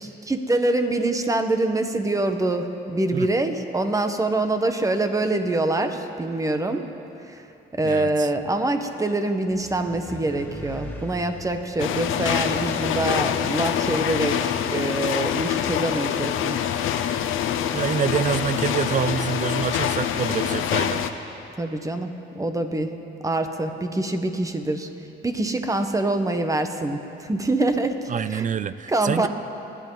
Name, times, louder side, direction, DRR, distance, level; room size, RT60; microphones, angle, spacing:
voice 1, 0.2-6.8 7.2-7.5 7.7-16.6 17.0-17.3 21.6-22.9 23.2-24.9 25.2-28.5 28.9-29.3, right 2 dB, 15° right, 6 dB, 1.3 m, -25 dB
voice 2, 7.8-8.3 17.7-21.1 28.1-29.3, right 7 dB, 40° right, 15 dB, 0.5 m, -26 dB
sound 1, 9.5-14.1, left 1 dB, 10° left, 2.1 m, -40 dB
sound 2, 11.8-21.1, left 9 dB, 85° left, 0.8 m, -25 dB
30.0 x 11.0 x 4.0 m, 2.9 s
cardioid pair, 90°, 20 cm